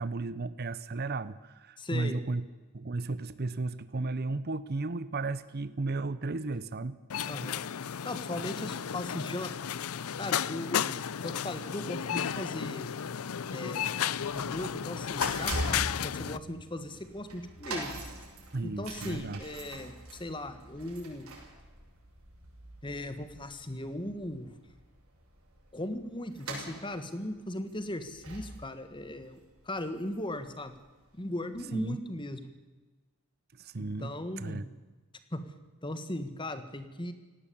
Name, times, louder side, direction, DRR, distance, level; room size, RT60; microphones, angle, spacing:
voice 1, 0.0-2.4 2.7-7.0 18.5-19.4 31.7-32.0 33.6-34.7, right 3 dB, 45° right, 16 dB, 0.7 m, -34 dB
voice 2, 1.8-2.2 7.3-7.7 8.0-9.5 10.2-11.0 11.2-12.9 13.5-14.0 14.3-17.9 18.6-21.3 22.8-24.5 25.7-29.4 29.6-30.7 31.1-32.5 33.8-34.6 35.3-35.4 35.8-37.1, left 1 dB, 20° left, 10 dB, 1.6 m, -38 dB
sound 1, 7.1-16.4, left 8 dB, 75° left, 0.5 m, -33 dB
sound 2, 14.1-30.5 30.7-31.0 31.8-31.9, right 1 dB, 70° right, 7.0 m, -43 dB
18.0 x 17.0 x 8.6 m, 1.2 s
head